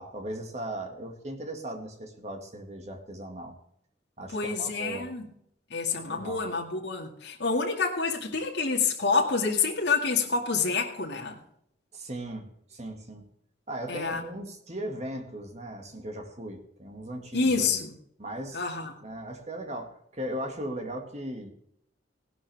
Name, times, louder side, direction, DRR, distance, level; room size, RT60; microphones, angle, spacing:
voice 1, 0.0-3.5 4.2-5.1 5.9-6.4 11.9-13.2 13.7-17.8 18.2-18.6 19.0-21.5, right 1 dB, 35° right, 2.1 m, -38 dB
voice 2, 4.3-5.2 5.7-11.4 13.9-14.2 17.3-17.9 18.5-18.9, left 4 dB, 65° left, 2.1 m, -27 dB
17.0 x 11.5 x 3.5 m
head